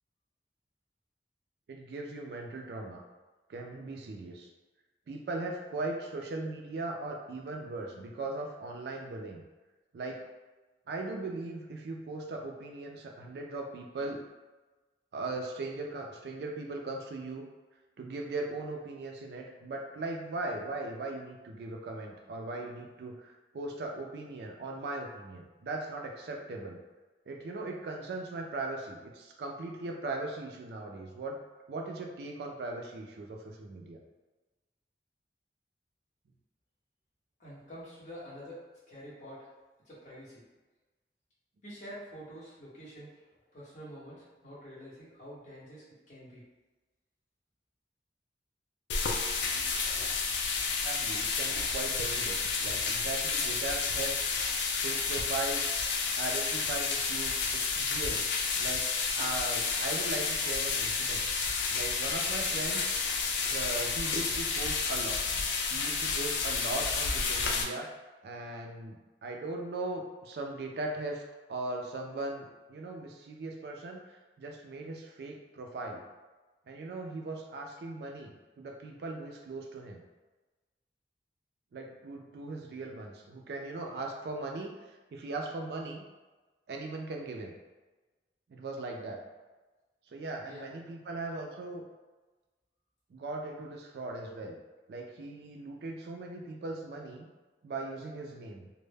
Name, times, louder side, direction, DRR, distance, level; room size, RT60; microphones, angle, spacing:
voice 1, 1.7-3.0 3.5-4.5 5.1-9.4 9.9-10.2 10.9-14.2 15.1-17.5 18.0-26.8 27.3-31.4 31.7-34.0 50.7-54.2 54.8-55.7 56.2-58.2 58.6-61.3 61.7-62.9 63.4-65.2 65.7-67.9 68.2-71.2 71.5-76.0 76.7-80.0 81.7-86.0 86.7-87.6 88.5-89.2 90.1-91.8 93.1-94.6 94.9-97.3 97.6-98.7, right 2 dB, 65° right, 2 dB, 0.3 m, -39 dB
voice 2, 37.4-39.5 39.8-40.4 41.6-46.4 90.4-90.7, equal, 40° left, -8 dB, 0.8 m, -47 dB
sound 1, 48.9-67.6, left 4 dB, 90° left, 0.3 m, -31 dB
2.1 x 2.0 x 3.2 m, 1.2 s
head